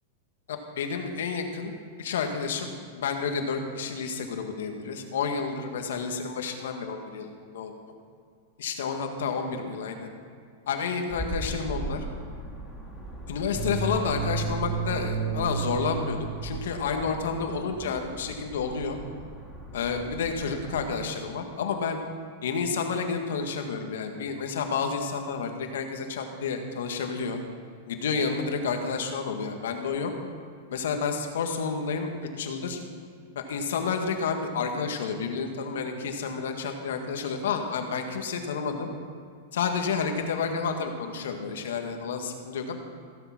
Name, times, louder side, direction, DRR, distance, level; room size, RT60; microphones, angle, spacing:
voice 1, 0.5-7.7 8.6-10.1 10.7-12.0 13.3-19.0 19.7-22.0 22.4-27.4 27.9-30.1 30.7-32.1 32.4-32.8 33.4-38.9 39.5-42.7, left 5 dB, 80° left, 5 dB, 1.8 m, -30 dB
sound 1, 11.1-21.0, right 4 dB, 5° right, 2.1 m, -35 dB
15.5 x 7.9 x 6.2 m, 2.2 s
hypercardioid pair, 135°, 0 cm